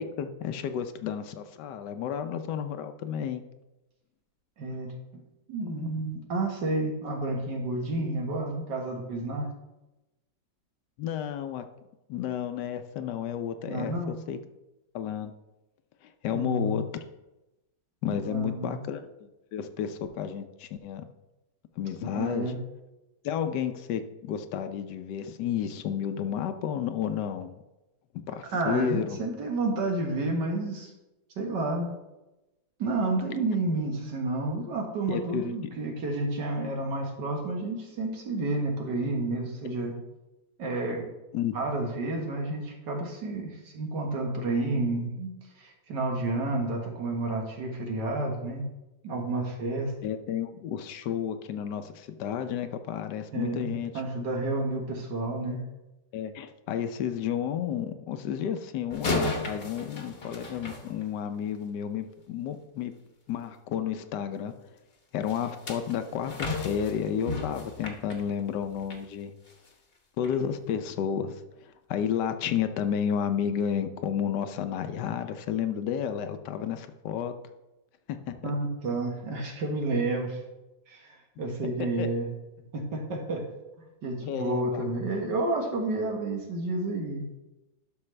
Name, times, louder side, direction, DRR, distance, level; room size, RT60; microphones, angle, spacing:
voice 1, 0.0-3.4 11.0-11.6 12.1-14.4 14.9-15.3 16.0-16.8 18.0-21.0 21.8-22.5 23.2-27.5 28.3-29.2 35.1-35.5 41.3-41.6 50.0-54.0 56.1-62.9 63.3-64.5 65.1-69.3 70.2-77.3 78.1-78.5 82.0-82.1 84.2-85.2, left 8 dB, 75° left, 9 dB, 1.2 m, -32 dB
voice 2, 4.6-5.2 5.5-9.5 13.7-14.2 16.3-16.8 18.1-18.8 22.0-22.6 28.5-30.9 31.4-31.9 32.8-39.9 40.6-41.1 41.5-45.3 45.6-48.7 49.0-49.9 53.3-55.6 78.4-80.4 80.9-82.3 82.7-83.5 84.0-87.3, right 2 dB, 75° right, 1 dB, 2.0 m, -30 dB
sound 1, 58.9-61.5 65.3-69.1 69.5-69.7 70.2-70.4, left 2 dB, 40° left, 1.1 m, -34 dB
11.5 x 6.0 x 3.3 m, 1.0 s
omnidirectional pair, 1.9 m